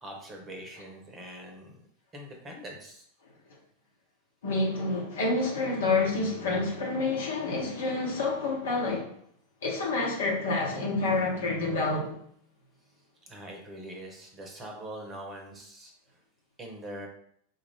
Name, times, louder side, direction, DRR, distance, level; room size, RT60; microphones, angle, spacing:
voice 1, 0.0-1.8 2.1-3.0 13.3-15.9 16.6-17.1, right 1 dB, 20° right, 0.9 m, -43 dB
voice 2, 4.4-9.1 9.6-12.2, left 3 dB, 60° left, 1.2 m, -28 dB
4.3 x 2.5 x 3.4 m
figure-of-eight pair, 90°, 0 cm